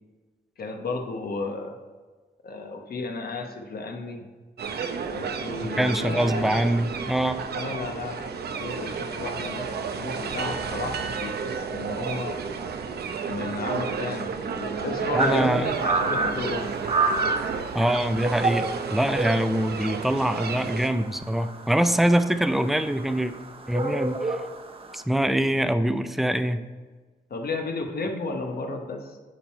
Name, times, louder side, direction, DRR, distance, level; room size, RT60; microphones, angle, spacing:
voice 1, 0.6-1.8 2.4-4.3 5.1-6.6 7.5-12.4 13.2-16.7 27.3-29.2, left 3 dB, 65° left, 4 dB, 1.0 m, -33 dB
sound 1, 4.6-20.9, right 6 dB, 75° right, 0.6 m, -32 dB
voice 2, 5.6-7.4 15.1-15.7 17.7-23.3 23.7-24.4 24.9-26.7, right 1 dB, ahead, 10 dB, 0.4 m, -24 dB
sound 2, 15.2-25.0, right 3 dB, 35° right, 0.7 m, -30 dB
9.2 x 4.6 x 4.3 m, 1.4 s
wide cardioid pair, 100°, 17 cm